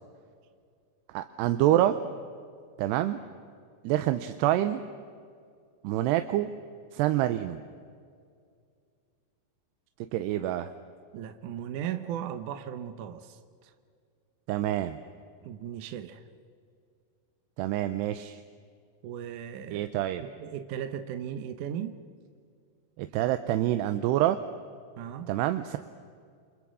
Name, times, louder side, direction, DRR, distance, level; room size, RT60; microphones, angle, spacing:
voice 1, 1.1-2.0 2.8-3.2 3.8-4.8 5.8-6.5 6.9-7.6 10.1-10.7 14.5-15.0 17.6-18.4 19.7-20.2 23.0-24.4 25.3-25.8, right 13 dB, 90° right, 9 dB, 2.9 m, -26 dB
voice 2, 11.1-13.7 15.4-16.2 19.0-19.9 20.2-22.0 25.0-25.3, right 9 dB, 75° right, 9 dB, 1.9 m, -37 dB
28.5 x 27.0 x 6.3 m, 2.2 s
omnidirectional pair, 4.6 m